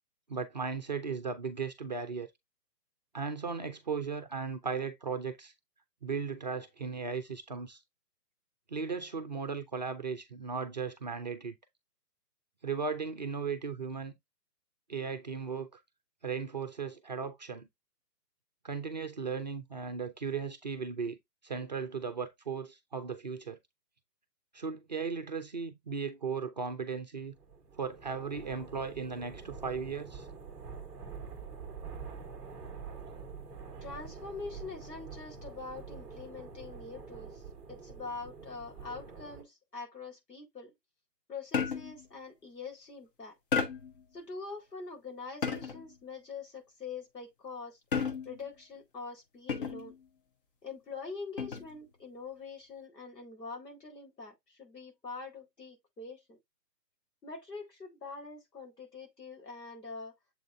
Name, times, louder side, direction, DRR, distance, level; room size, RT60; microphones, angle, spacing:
voice 1, 0.3-2.3 3.1-5.5 6.0-7.8 8.7-11.5 12.6-14.1 14.9-15.8 16.2-17.7 18.6-21.2 21.4-23.6 24.5-27.4 27.8-30.3, right 5 dB, 25° right, 0.6 m, -36 dB
sound 1, 27.4-39.4, right 5 dB, ahead, 0.9 m, -46 dB
voice 2, 33.8-37.4 37.7-40.7 41.3-43.4 44.1-47.8 48.2-49.9 50.6-56.4 57.2-60.2, left 4 dB, 75° left, 4.4 m, -44 dB
sound 2, 41.5-42.1 43.5-44.0 45.4-45.9 47.9-48.5 49.5-50.0 51.4-51.8, left 6 dB, 30° left, 1.1 m, -33 dB
7.5 x 3.8 x 3.3 m
figure-of-eight pair, 140°, 49 cm